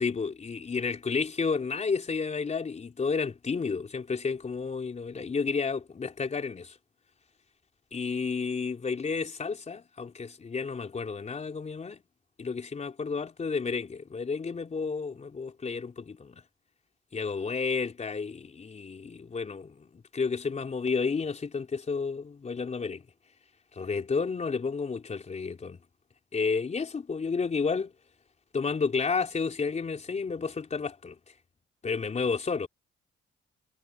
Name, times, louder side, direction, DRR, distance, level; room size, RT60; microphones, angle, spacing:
voice 1, 0.0-6.8 7.9-12.0 12.4-16.4 17.1-23.0 23.8-25.8 26.3-27.9 28.5-31.2 31.8-32.7, left 5 dB, 35° left, 3.8 m, -31 dB
cardioid pair, 90°, 20 cm